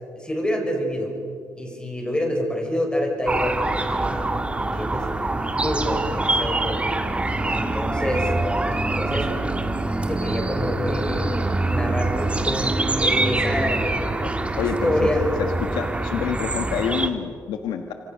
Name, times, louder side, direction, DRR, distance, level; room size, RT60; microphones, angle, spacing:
voice 1, 0.2-1.2 1.6-4.3 4.5-5.1 5.5-6.9 7.5-8.3 9.0-9.6 10.1-11.3 11.7-14.0 14.6-15.2, left 1 dB, 15° left, 1 dB, 6.8 m, -27 dB
sound 1, 3.3-17.1, right 2 dB, 15° right, 1.9 m, -24 dB
voice 2, 14.6-15.1 15.7-17.9, left 7 dB, 90° left, 6 dB, 1.5 m, -27 dB
27.0 x 25.5 x 6.4 m, 2.4 s
cardioid pair, 90°, 7 cm